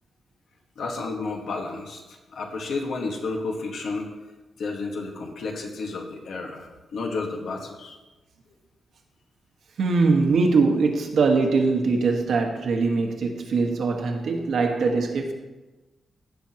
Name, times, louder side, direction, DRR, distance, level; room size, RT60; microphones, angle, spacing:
voice 1, 0.7-4.1 4.6-8.0, left 3 dB, 80° left, 2 dB, 1.5 m, -31 dB
voice 2, 9.8-15.3, right 4 dB, 75° right, 2 dB, 1.4 m, -22 dB
16.5 x 6.1 x 2.9 m, 1.1 s
wide cardioid pair, 140°, 0 cm